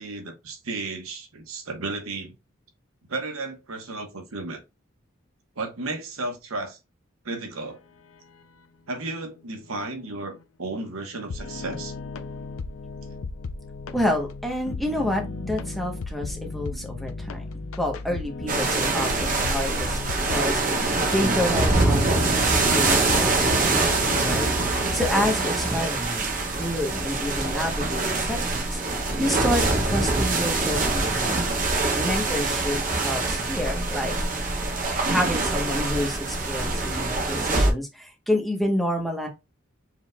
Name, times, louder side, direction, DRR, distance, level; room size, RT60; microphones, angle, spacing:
voice 1, 0.0-2.3 3.1-4.6 5.6-6.8 7.2-7.8 8.9-11.9 16.7-16.9 20.7-21.0, right 3 dB, 85° right, 1.1 m, -34 dB
sound 1, 9.8-10.4 11.3-25.3, left 3 dB, 80° left, 0.5 m, -36 dB
voice 2, 13.9-17.5 17.8-20.0 20.3-20.8 21.1-23.9 24.2-26.2 26.6-28.8 29.2-31.5 32.0-34.1 35.1-39.3, left 1 dB, ahead, 0.9 m, -29 dB
sound 2, 18.5-37.7, right 3 dB, 40° right, 0.9 m, -24 dB
4.7 x 3.8 x 2.2 m
head